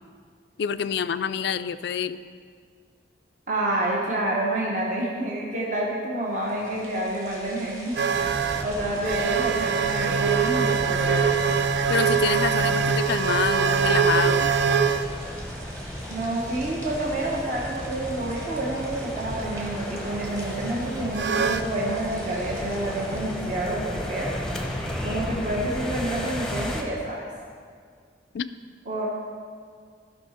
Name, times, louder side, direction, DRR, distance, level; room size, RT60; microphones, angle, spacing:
voice 1, 0.6-2.2 11.9-14.5 28.3-28.5, left 7 dB, 60° left, 13 dB, 0.3 m, -27 dB
voice 2, 3.5-8.0 8.6-11.3 16.1-24.3 25.0-27.3 28.9-29.1, right 1 dB, 40° right, -3 dB, 1.1 m, -28 dB
sound 1, 6.3-23.9, right 1 dB, 15° right, 1.5 m, -44 dB
sound 2, 8.0-15.1 19.4-19.7 21.1-21.7 23.1-23.3 24.9-25.0, right 6 dB, 60° right, 0.4 m, -23 dB
sound 3, 8.1-26.8, equal, 5° left, 0.8 m, -34 dB
15.0 x 5.8 x 4.3 m, 2.1 s
head